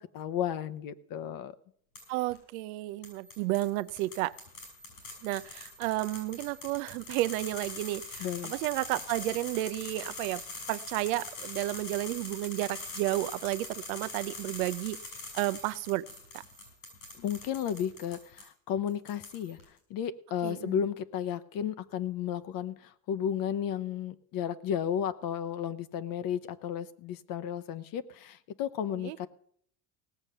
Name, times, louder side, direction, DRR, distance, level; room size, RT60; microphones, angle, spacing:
voice 1, 0.0-1.6 8.2-8.5 17.2-19.6 19.9-29.3, left 9 dB, 55° left, 13 dB, 1.0 m, -33 dB
sound 1, 2.0-2.4 3.0-18.5 18.9-19.6, left 3 dB, 90° left, 6.4 m, -43 dB
voice 2, 2.1-4.3 5.2-10.4 10.7-15.0 15.3-16.0 20.4-20.7 29.0-29.2, right 18 dB, 80° right, 15 dB, 0.7 m, -32 dB
17.5 x 7.2 x 6.8 m, 0.65 s
supercardioid pair, 100°, 41 cm